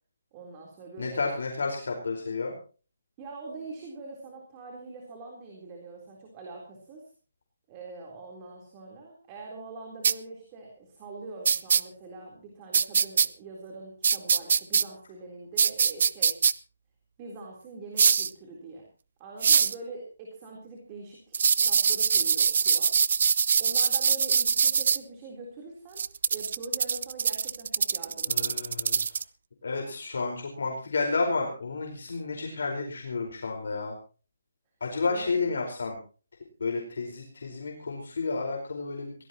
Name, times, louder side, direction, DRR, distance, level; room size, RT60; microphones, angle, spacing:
voice 1, 0.3-1.3 3.2-7.1 7.7-16.4 17.2-18.9 19.2-22.9 23.6-26.0 26.3-28.7 35.1-35.5, right 3 dB, 20° right, 0 dB, 3.8 m, -43 dB
voice 2, 1.0-2.5 28.3-29.2 29.6-34.0 34.8-36.0 36.6-39.1, left 4 dB, 65° left, 1 dB, 4.8 m, -31 dB
sound 1, 10.0-10.1 11.5-11.8 12.7-13.3 14.0-14.8 15.6-16.5 18.0-18.3 19.4-19.7 21.3-25.0 26.0-29.2, right 6 dB, 45° right, 0.7 m, -23 dB
23.0 x 18.0 x 3.0 m, 0.38 s
hypercardioid pair, 175°, 0 cm